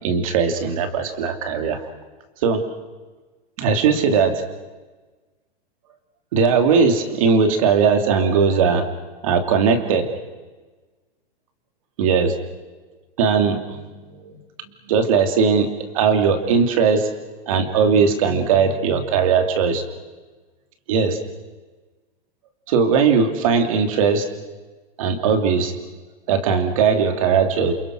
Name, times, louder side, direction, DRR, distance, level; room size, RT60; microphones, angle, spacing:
voice 1, 0.0-1.8 2.4-2.6 3.6-4.4 6.3-8.8 9.2-10.1 12.0-12.3 13.2-14.4 14.9-15.7 15.9-17.1 17.5-19.8 20.9-21.2 22.7-24.3 25.0-25.7 26.3-27.7, right 5 dB, 35° right, 7 dB, 2.6 m, -19 dB
28.5 x 28.0 x 6.3 m, 1.3 s
hypercardioid pair, 180°, 30 cm